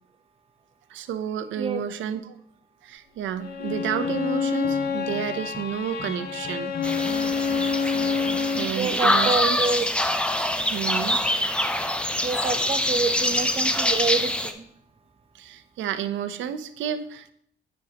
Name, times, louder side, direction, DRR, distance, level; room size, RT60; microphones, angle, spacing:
voice 1, 0.9-2.4 2.8-6.7 8.5-9.6 10.7-11.2 15.3-17.3, right 9 dB, 75° right, 11 dB, 0.6 m, -31 dB
Bowed string instrument, 3.4-8.8, left 5 dB, 55° left, 0.7 m, -27 dB
sound 1, 3.7-10.3, left 4 dB, 35° left, 1.1 m, -41 dB
sound 2, 6.8-14.5, left 1 dB, 5° left, 0.5 m, -25 dB
voice 2, 8.8-9.9 12.2-14.6, right 4 dB, 30° right, 10 dB, 0.7 m, -27 dB
9.0 x 5.5 x 2.8 m, 0.67 s
cardioid pair, 90°, 20 cm